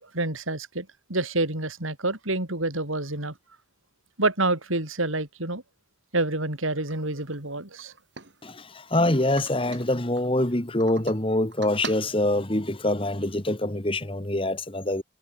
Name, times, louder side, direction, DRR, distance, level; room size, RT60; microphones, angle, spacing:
voice 1, 0.0-3.3 4.2-5.6 6.1-7.9, right 2 dB, 85° right, 5.3 m, -28 dB
sound 1, 6.9-7.0 7.3-7.4 7.8-8.9 9.3-10.3 10.8-11.2 11.5-12.7, right 4 dB, 60° right, 3.7 m, -41 dB
voice 2, 8.4-15.0, left 1 dB, 25° left, 1.8 m, -25 dB
head